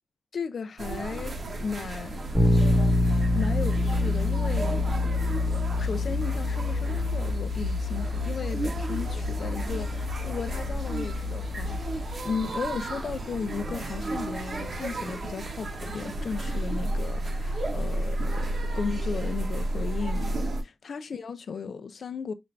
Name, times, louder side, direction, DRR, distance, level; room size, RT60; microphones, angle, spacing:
voice 1, 0.3-2.3 3.3-4.9 5.8-20.4 20.8-22.3, left 5 dB, 80° left, 0.4 m, -35 dB
sound 1, 0.8-20.6, right 2 dB, 70° right, 0.9 m, -33 dB
Bass guitar, 2.3-12.2, left 2 dB, 10° right, 1.0 m, -27 dB
5.6 x 2.5 x 3.1 m
wide cardioid pair, 135°, 0 cm